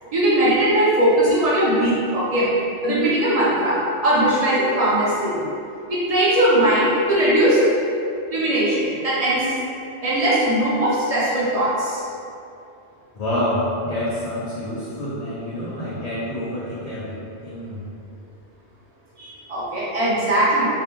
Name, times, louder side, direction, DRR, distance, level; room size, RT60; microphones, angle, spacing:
voice 1, 0.1-2.5 2.8-5.4 5.9-7.6 8.3-9.5 10.0-12.0 19.2-20.7, right 1 dB, 40° right, -8 dB, 0.6 m, -19 dB
voice 2, 13.1-17.2 17.4-17.8, left 1 dB, 65° left, -9 dB, 0.4 m, -27 dB
2.4 x 2.1 x 2.9 m, 2.6 s
omnidirectional pair, 1.2 m